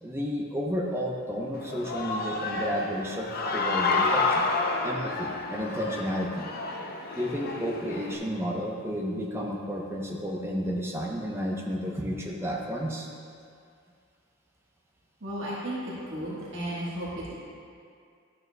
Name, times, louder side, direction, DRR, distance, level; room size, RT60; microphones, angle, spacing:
voice 1, 0.0-4.5 4.8-6.5 7.2-13.1, equal, 10° right, -1 dB, 0.7 m, -32 dB
Human voice / Cheering, 1.5-8.2, left 3 dB, 45° left, 0.6 m, -29 dB
voice 2, 15.2-15.8 16.1-17.3, right 1 dB, 60° right, -8 dB, 1.4 m, -34 dB
11.5 x 6.5 x 2.2 m, 2.3 s
head